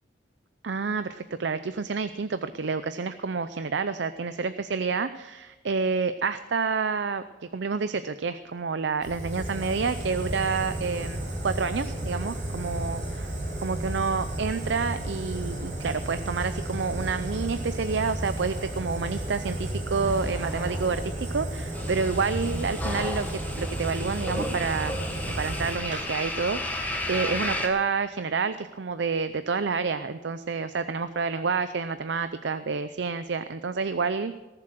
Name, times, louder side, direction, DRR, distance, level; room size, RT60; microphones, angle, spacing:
voice 1, 0.6-7.2 7.5-13.0 13.6-34.4, right 5 dB, 70° right, 12 dB, 0.6 m, -29 dB
Fire, 9.0-26.0, right 1 dB, 45° right, 5.3 m, -33 dB
Explosion, 20.0-21.7 22.2-23.1, equal, 15° right, 5.6 m, -44 dB
sound 1, 21.7-27.7, left 1 dB, 10° left, 1.5 m, -33 dB
18.5 x 7.6 x 7.7 m, 1.2 s
head